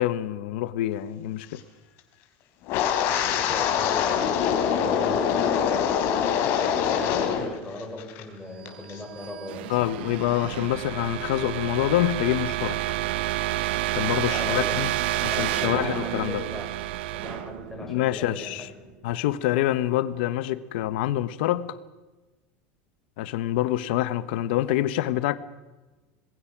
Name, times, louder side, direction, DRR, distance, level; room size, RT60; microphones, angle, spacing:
voice 1, 0.0-1.6 9.7-12.8 13.9-14.9 15.2-16.4 17.9-18.7 19.0-21.8 23.2-25.4, left 14 dB, 75° left, 1.3 m, -26 dB
Wind, 2.7-7.5 7.8-8.2 8.7-8.9, left 8 dB, 45° left, 3.6 m, -24 dB
voice 2, 3.1-6.0 6.6-9.9 14.1-14.8 15.3-16.7 17.1-19.0, left 2 dB, 5° left, 6.5 m, -38 dB
sound 1, 8.8-18.6, right 16 dB, 90° right, 0.7 m, -30 dB
26.5 x 21.5 x 6.1 m
supercardioid pair, 170°, 6 cm